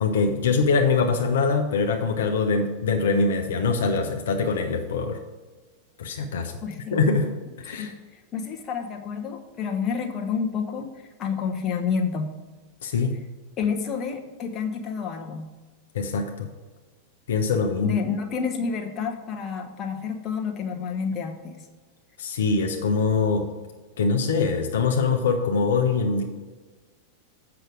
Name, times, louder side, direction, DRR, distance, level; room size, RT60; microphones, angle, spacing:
voice 1, 0.0-5.2 6.0-6.5 6.9-7.3 7.6-7.9 12.8-13.1 15.9-16.5 17.3-18.0 22.2-23.5 24.0-26.2, left 4 dB, 60° left, 4 dB, 0.7 m, -23 dB
voice 2, 6.6-7.0 7.7-7.9 8.1-10.9 11.2-12.3 13.6-15.5 17.8-21.7, left 6 dB, 30° left, 3 dB, 1.0 m, -29 dB
7.8 x 5.9 x 5.0 m, 1.3 s
figure-of-eight pair, 90°, 0 cm